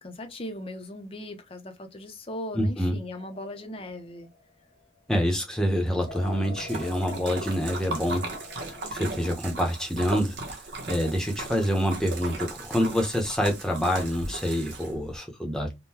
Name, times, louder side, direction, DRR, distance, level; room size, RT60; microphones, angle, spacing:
voice 1, 0.0-4.3 13.8-13.9, left 1 dB, 30° left, 0.6 m, -38 dB
voice 2, 2.5-2.9 5.1-8.3 8.6-10.4 10.9-15.8, equal, 5° left, 0.8 m, -26 dB
sound 1, 3.2-5.0 6.1-8.9, left 2 dB, 75° left, 0.9 m, -44 dB
Splash splatter, 6.0-15.1, right 2 dB, 75° right, 1.1 m, -37 dB
3.7 x 2.2 x 2.8 m
head